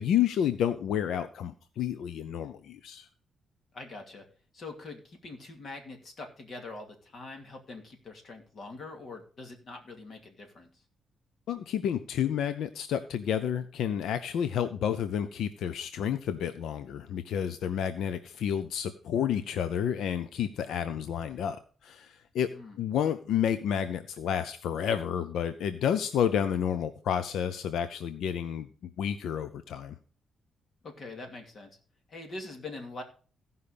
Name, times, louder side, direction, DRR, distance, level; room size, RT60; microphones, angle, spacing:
voice 1, 0.0-3.1 11.5-22.5 22.8-30.0, left 9 dB, 85° left, 11 dB, 0.6 m, -30 dB
voice 2, 3.7-4.2 4.5-10.8 22.5-22.8 30.8-31.7 32.1-33.0, left 3 dB, 50° left, 3 dB, 2.5 m, -43 dB
15.5 x 5.5 x 5.1 m, 0.39 s
cardioid pair, 125°, 0 cm